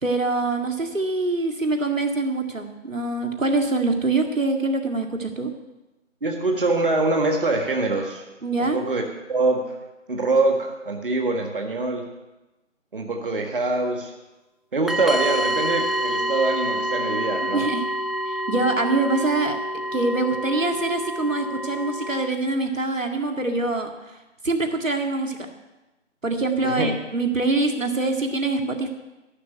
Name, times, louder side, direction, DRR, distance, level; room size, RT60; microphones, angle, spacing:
voice 1, 0.0-5.5 8.4-8.8 17.5-17.8 18.3-19.6 19.9-23.9 24.4-25.4 26.2-28.9, right 3 dB, 85° right, 4 dB, 2.1 m, -24 dB
voice 2, 6.2-8.2 8.6-9.0 9.3-9.8 10.1-12.0 12.9-14.1 14.7-17.6 26.6-26.9, right 2 dB, 45° right, 2 dB, 1.7 m, -24 dB
sound 1, 14.9-22.3, equal, ahead, 0.3 m, -27 dB
14.0 x 6.3 x 9.3 m, 1.0 s
figure-of-eight pair, 165°, 38 cm